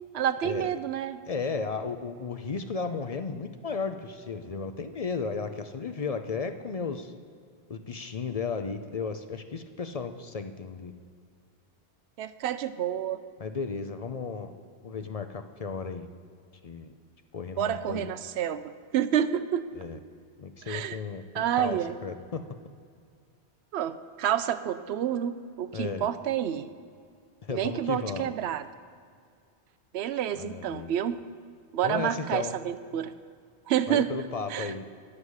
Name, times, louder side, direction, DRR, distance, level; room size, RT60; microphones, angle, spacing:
voice 1, 0.1-1.2 12.2-13.2 17.6-19.7 20.7-21.0 21.3-22.0 23.7-26.7 27.5-28.7 29.9-31.2 31.7-33.1 33.7-34.1 34.5-34.7, right 10 dB, 70° right, 13 dB, 0.8 m, -29 dB
voice 2, 1.3-7.1 7.7-10.9 13.4-14.5 14.8-16.1 16.6-16.9 17.3-18.1 19.8-20.0 20.4-22.4 25.7-26.1 27.4-28.3 30.3-30.9 31.8-32.5 33.9-34.8, left 5 dB, 50° left, 8 dB, 0.5 m, -34 dB
10.5 x 7.4 x 6.4 m, 2.2 s
omnidirectional pair, 1.2 m